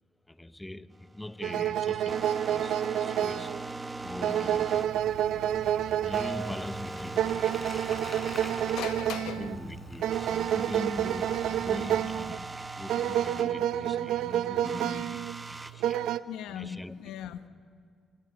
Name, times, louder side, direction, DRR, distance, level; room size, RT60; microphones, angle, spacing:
voice 1, 0.2-3.6 4.0-5.1 6.0-7.8 9.1-17.0, left 1 dB, 10° left, 0.9 m, -42 dB
sound 1, 0.9-8.9 9.2-9.3 9.6-9.8 10.1-13.5 14.6-15.7, right 2 dB, 20° right, 1.2 m, -40 dB
sound 2, 1.4-16.2, right 11 dB, 85° right, 0.7 m, -30 dB
Bicycle, 4.8-12.3, left 2 dB, 25° left, 4.4 m, -46 dB
voice 2, 8.3-9.5 16.3-17.5, left 11 dB, 90° left, 1.2 m, -39 dB
27.5 x 27.0 x 7.3 m
cardioid pair, 90°, 0 cm